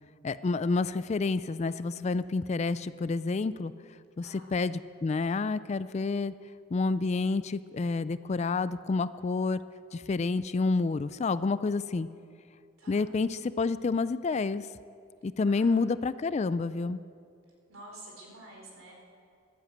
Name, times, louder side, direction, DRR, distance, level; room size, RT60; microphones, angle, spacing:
voice 1, 0.2-3.7 4.2-6.3 6.7-9.6 9.9-12.1 12.9-14.7 15.2-17.0, left 3 dB, 35° left, 15 dB, 0.3 m, -29 dB
voice 2, 4.2-4.5 12.8-13.2 15.5-15.7 17.7-18.9, right 1 dB, 80° right, 0 dB, 3.9 m, -49 dB
14.0 x 12.0 x 7.9 m, 2.4 s
head